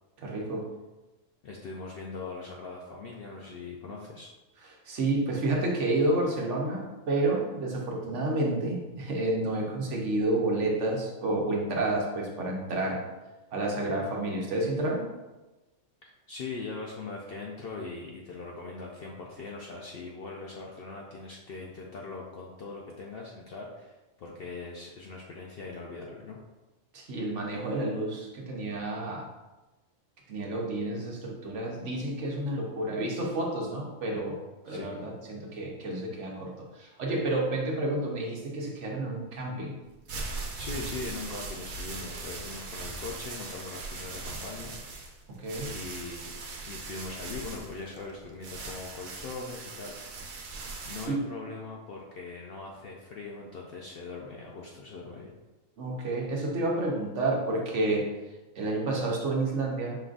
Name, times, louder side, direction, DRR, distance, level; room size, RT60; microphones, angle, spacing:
voice 1, 0.2-0.7 4.6-13.0 13.5-15.1 26.9-29.3 30.3-39.8 45.3-45.7 51.1-51.2 55.8-58.1 58.6-60.0, right 2 dB, 60° right, -1 dB, 1.1 m, -30 dB
voice 2, 1.4-4.3 16.0-26.4 34.7-34.9 40.5-44.8 45.7-46.3 46.6-49.9 50.8-55.3, left 3 dB, 60° left, -2 dB, 0.6 m, -41 dB
sound 1, 39.9-51.1, right 3 dB, 85° right, 1.2 m, -40 dB
5.3 x 3.7 x 2.4 m, 1.1 s
omnidirectional pair, 1.4 m